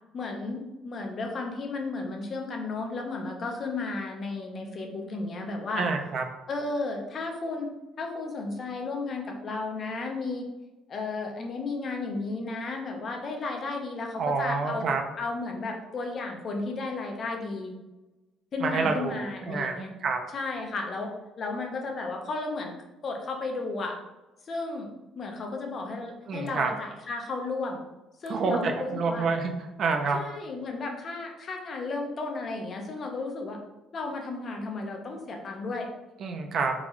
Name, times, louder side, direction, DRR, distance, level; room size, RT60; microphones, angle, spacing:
voice 1, 0.1-5.9 6.5-7.7 8.0-10.5 10.9-14.9 15.2-17.8 18.5-19.9 20.3-22.7 23.0-24.0 24.4-24.9 25.2-27.8 28.2-29.3 30.1-33.6 33.9-35.9, left 3 dB, 35° left, 2 dB, 0.6 m, -33 dB
voice 2, 5.8-6.2 14.2-15.0 18.6-19.7 20.0-20.2 26.3-26.7 28.3-29.5 29.8-30.2 36.2-36.7, right 4 dB, 45° right, 4 dB, 0.5 m, -27 dB
3.9 x 3.6 x 3.1 m, 1.1 s
cardioid pair, 160°, 0 cm